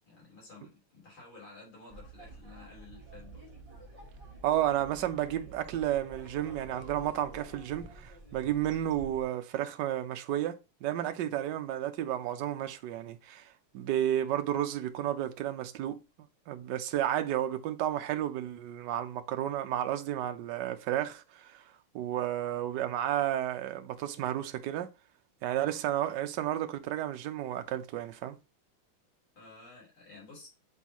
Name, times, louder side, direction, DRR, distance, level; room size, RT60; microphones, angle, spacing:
voice 1, 0.0-3.5 3.9-4.3 29.4-30.5, left 3 dB, 70° left, 4.5 m, -53 dB
sound 1, 1.9-9.2, right 2 dB, 15° right, 2.0 m, -49 dB
voice 2, 4.4-13.5 13.7-16.0 16.5-21.6 21.9-24.9 25.4-28.4, right 12 dB, 65° right, 1.2 m, -32 dB
8.2 x 3.9 x 2.9 m
omnidirectional pair, 2.4 m